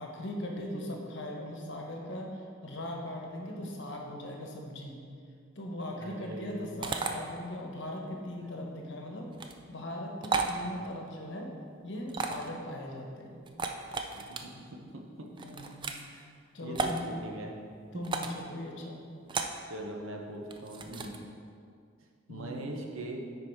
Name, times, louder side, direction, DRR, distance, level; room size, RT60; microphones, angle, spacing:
voice 1, 0.0-5.0 5.5-9.3 9.7-11.5 11.8-13.5 15.4-16.1 16.5-17.0 17.9-19.0 22.3-22.7, left 1 dB, 60° left, 0 dB, 1.1 m, -39 dB
voice 2, 6.0-6.8 10.6-10.9 14.1-15.3 15.9-16.3 16.6-17.6 19.3-21.2 22.3-23.2, right 1 dB, 80° right, 1 dB, 1.0 m, -42 dB
sound 1, 6.8-7.1 9.3-9.5 10.2-10.5 12.1-12.5 13.5-14.4 15.4-16.0 16.7-17.0 18.0-18.4 19.3-19.6 20.5-21.2, right 4 dB, 25° right, 0.4 m, -33 dB
9.6 x 4.2 x 4.6 m, 2.3 s
head